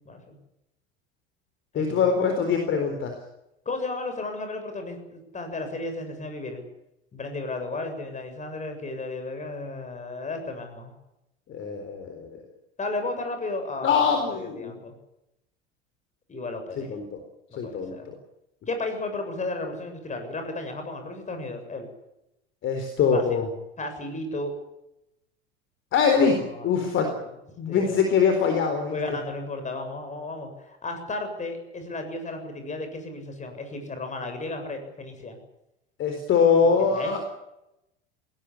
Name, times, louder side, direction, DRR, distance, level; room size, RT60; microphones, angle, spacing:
voice 1, 1.7-3.1 11.5-12.3 13.8-14.7 16.9-17.2 17.6-18.1 22.6-23.5 25.9-27.1 27.6-28.9 36.0-37.2, left 6 dB, 35° left, 5 dB, 4.2 m, -23 dB
voice 2, 3.7-6.6 7.1-11.0 12.8-14.9 16.3-17.0 17.5-18.1 18.7-21.9 23.1-23.4 23.8-24.5 26.3-27.2 27.7-28.0 28.9-35.4 36.6-37.2, left 2 dB, 20° left, 6 dB, 7.3 m, -34 dB
21.0 x 17.5 x 10.0 m, 0.88 s
figure-of-eight pair, 75°, 32 cm